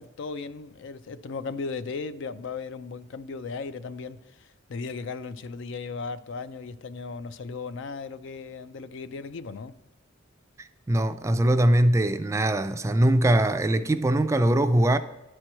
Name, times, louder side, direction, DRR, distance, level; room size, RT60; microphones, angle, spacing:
voice 1, 0.0-9.7, left 4 dB, 65° left, 0.4 m, -36 dB
voice 2, 10.6-15.0, right 1 dB, 15° right, 0.3 m, -22 dB
11.0 x 4.5 x 4.4 m
head